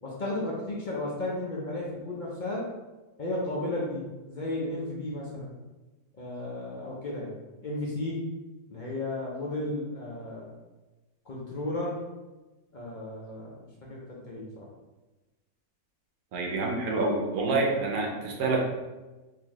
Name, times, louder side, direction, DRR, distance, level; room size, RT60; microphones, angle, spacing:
voice 1, 0.0-2.6 3.2-5.5 6.2-7.3 7.6-8.2 8.7-10.5 11.3-12.0 12.7-13.5 13.9-14.6, left 2 dB, 55° left, -5 dB, 0.5 m, -34 dB
voice 2, 16.3-18.6, right 3 dB, 75° right, 1 dB, 1.2 m, -27 dB
4.0 x 2.7 x 3.0 m, 1.1 s
omnidirectional pair, 1.6 m